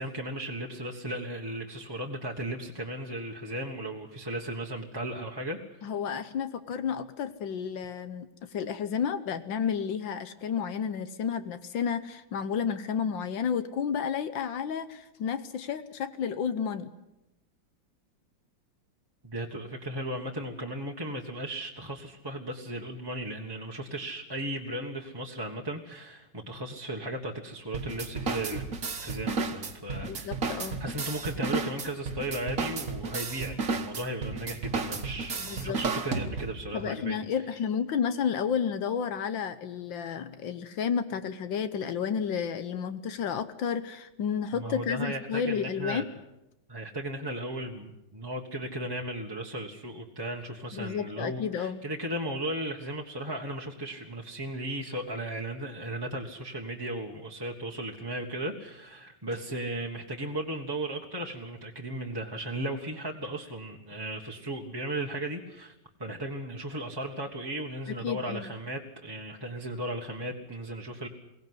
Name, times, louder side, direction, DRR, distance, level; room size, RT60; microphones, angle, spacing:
voice 1, 0.0-5.9 19.2-28.6 29.0-37.5 44.5-46.1 46.7-65.7 66.0-71.1, right 1 dB, 15° right, 0 dB, 1.4 m, -36 dB
voice 2, 5.8-16.9 30.0-30.8 35.4-35.8 36.7-46.1 50.7-51.8 67.9-68.5, left 7 dB, 75° left, 11 dB, 1.7 m, -31 dB
sound 1, 27.7-36.7, right 4 dB, 45° right, 1.8 m, -33 dB
22.5 x 17.5 x 9.7 m, 0.91 s
omnidirectional pair, 2.1 m